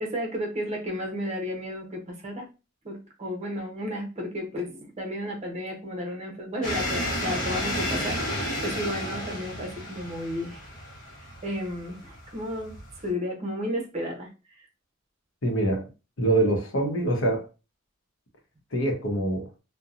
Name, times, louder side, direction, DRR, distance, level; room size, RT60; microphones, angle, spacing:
voice 1, 0.0-2.5 2.8-10.7 11.4-14.3, equal, 35° right, 0.7 m, -33 dB
sound 1, 6.6-13.1, left 1 dB, 45° left, 0.9 m, -32 dB
voice 2, 15.4-15.9 16.2-17.5 18.7-19.5, right 2 dB, 75° left, 0.8 m, -25 dB
2.7 x 2.2 x 2.4 m
head